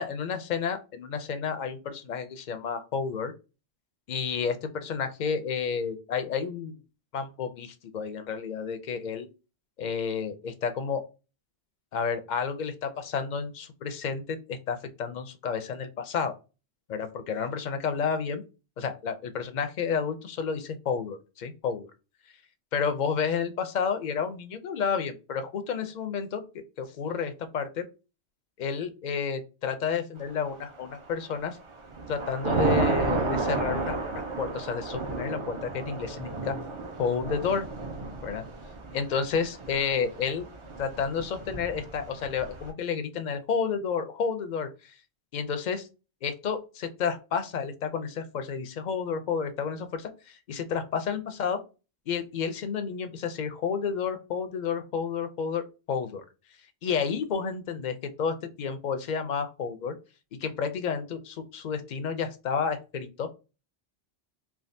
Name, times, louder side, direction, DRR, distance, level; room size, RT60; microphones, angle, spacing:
voice 1, 0.0-3.3 4.1-6.7 7.1-9.3 9.8-11.0 11.9-16.3 16.9-18.4 18.8-21.9 22.7-26.4 26.8-27.8 28.6-31.6 32.1-36.5 37.0-37.7 38.2-38.4 38.9-40.5 40.8-44.9 45.3-45.9 46.2-51.6 52.1-56.2 56.8-59.9 60.3-63.3, left 6 dB, 55° left, 8 dB, 0.5 m, -31 dB
Thunder / Rain, 30.6-31.1 31.6-42.7, right 3 dB, 45° right, 0.4 m, -32 dB
3.4 x 2.3 x 2.6 m, 0.30 s
omnidirectional pair, 1.2 m